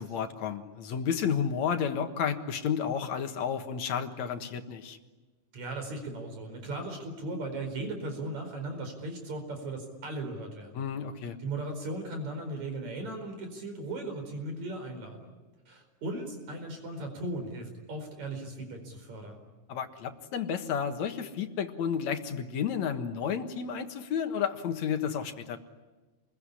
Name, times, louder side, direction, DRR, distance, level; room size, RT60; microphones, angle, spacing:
voice 1, 0.0-5.0 10.8-11.4 19.7-25.6, left 7 dB, 70° left, 7 dB, 2.8 m, -31 dB
voice 2, 5.5-10.9 11.4-15.3 15.7-19.5, right 2 dB, 70° right, 5 dB, 6.0 m, -37 dB
28.0 x 21.5 x 9.9 m, 1.2 s
omnidirectional pair, 3.3 m